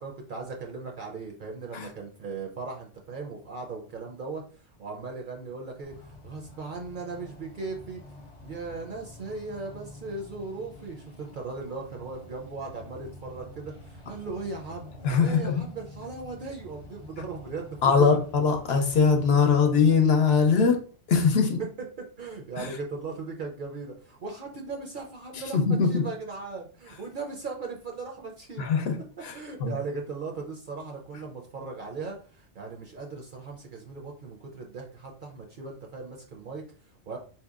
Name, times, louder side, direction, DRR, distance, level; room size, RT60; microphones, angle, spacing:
voice 1, 0.0-8.0 8.4-17.9 21.6-21.7 22.2-28.7 29.3-37.2, right 4 dB, 55° right, 0.6 m, -38 dB
sound 1, 5.8-20.5, left 1 dB, 35° left, 0.5 m, -48 dB
voice 2, 15.0-15.6 17.8-21.6 22.6-22.8 25.3-26.0 28.6-29.0 29.2-29.3 29.6-29.7, left 5 dB, 65° left, 0.8 m, -22 dB
4.4 x 2.8 x 2.3 m
omnidirectional pair, 1.2 m